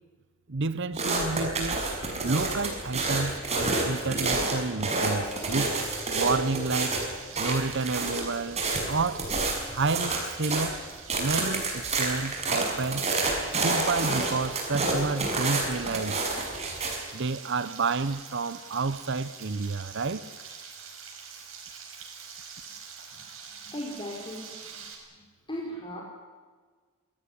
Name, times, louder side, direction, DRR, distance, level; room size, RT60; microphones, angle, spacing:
voice 1, 0.5-1.8 2.2-5.8 6.1-7.0 7.4-8.6 8.9-9.3 9.7-10.8 11.2-13.1 13.6-16.2 17.1-20.3, right 3 dB, 60° right, 0.8 m, -30 dB
sound 1, 1.0-10.7 11.1-17.0, right 3 dB, 30° right, 6.2 m, -29 dB
Frying (food), 5.4-24.9, right 6 dB, 75° right, 6.3 m, -46 dB
voice 2, 23.6-24.8 25.5-26.0, equal, 25° left, 4.5 m, -37 dB
26.5 x 19.0 x 9.8 m
head